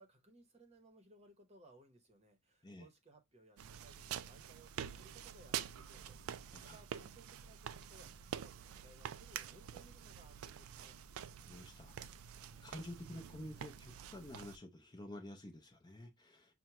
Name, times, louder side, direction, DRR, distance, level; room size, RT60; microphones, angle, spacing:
voice 1, 0.0-11.0, right 2 dB, 30° right, 0.8 m, -63 dB
sound 1, 3.6-14.6, right 9 dB, 80° right, 0.3 m, -47 dB
voice 2, 11.5-11.9 12.6-16.5, left 1 dB, 20° left, 0.5 m, -50 dB
5.8 x 2.2 x 2.9 m
head